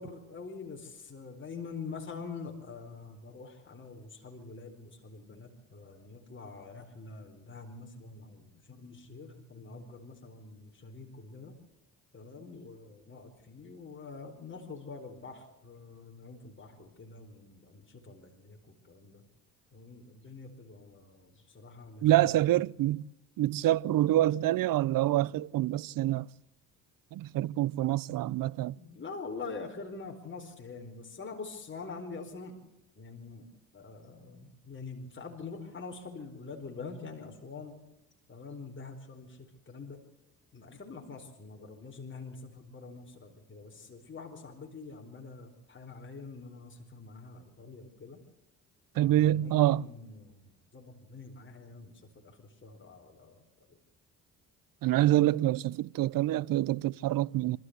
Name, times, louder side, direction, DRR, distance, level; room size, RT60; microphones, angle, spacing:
voice 1, 0.0-11.6 12.1-19.2 19.7-22.5 28.7-32.6 33.0-37.8 38.3-40.0 40.5-48.2 48.9-53.4 53.7-53.8, left 4 dB, 35° left, 4.4 m, -45 dB
voice 2, 22.0-23.1 23.4-26.3 27.1-28.8 49.0-49.9 54.8-57.6, right 14 dB, 70° right, 0.7 m, -26 dB
27.0 x 14.0 x 8.1 m
supercardioid pair, 70°, 35 cm